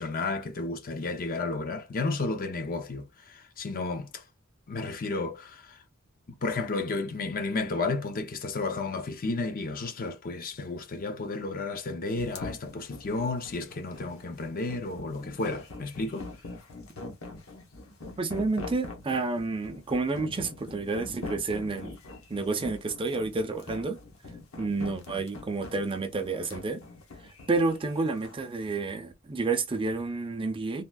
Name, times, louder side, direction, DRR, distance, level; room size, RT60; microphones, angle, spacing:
voice 1, 0.0-4.2 4.7-5.8 6.4-16.3, left 3 dB, 40° left, 0.5 m, -32 dB
sound 1, 12.2-28.4, left 2 dB, 70° left, 0.9 m, -43 dB
voice 2, 18.2-21.9 22.3-24.0 24.6-26.8 27.5-30.8, right 3 dB, 25° right, 0.5 m, -30 dB
3.5 x 2.3 x 2.2 m
head